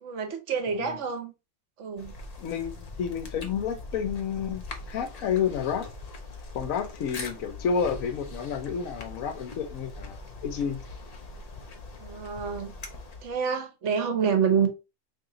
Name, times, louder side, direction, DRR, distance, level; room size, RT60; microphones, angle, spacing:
voice 1, 0.0-1.3 1.8-2.1 12.0-12.7 13.2-14.7, right 6 dB, 65° right, 1.0 m, -27 dB
voice 2, 0.7-1.0 2.4-5.9 6.5-10.8, left 7 dB, 80° left, 1.1 m, -30 dB
sound 1, 2.0-13.4, left 3 dB, 50° left, 0.4 m, -42 dB
2.9 x 2.9 x 3.7 m
omnidirectional pair, 1.4 m